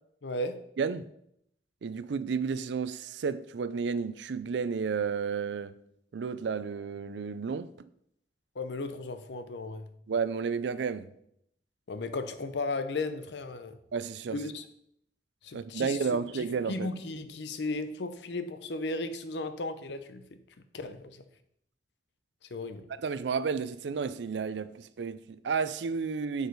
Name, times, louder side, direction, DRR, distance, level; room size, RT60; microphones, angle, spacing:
voice 1, 0.2-0.7 8.5-9.9 11.9-13.8 14.3-14.7 15.4-20.4 20.7-21.2 22.4-22.9, left 2 dB, 75° left, 0.6 m, -35 dB
voice 2, 1.8-5.7 6.1-7.7 10.1-11.1 13.9-14.4 15.5-16.9 23.0-26.5, right 5 dB, 75° right, 0.4 m, -32 dB
6.7 x 4.8 x 4.6 m
head